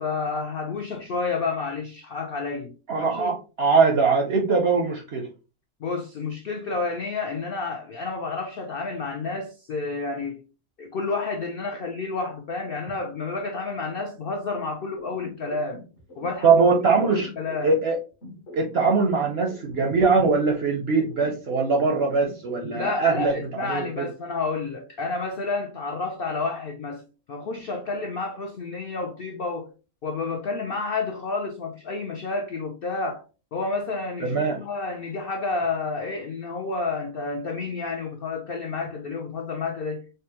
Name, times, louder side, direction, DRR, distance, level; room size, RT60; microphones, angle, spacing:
voice 1, 0.0-2.7 3.0-3.4 5.8-10.4 10.8-15.8 16.2-16.5 17.0-17.7 22.7-29.7 30.0-33.2 33.5-40.1, left 3 dB, 75° left, 0.5 m, -30 dB
voice 2, 2.9-5.3 16.4-17.3 17.6-18.0 18.5-23.3 23.7-24.1 34.2-34.6, right 4 dB, 65° right, 0.6 m, -21 dB
sound 1, 15.0-17.9 18.2-21.9 22.2-22.9, left 1 dB, 50° left, 1.2 m, -43 dB
5.1 x 2.2 x 2.7 m
omnidirectional pair, 1.6 m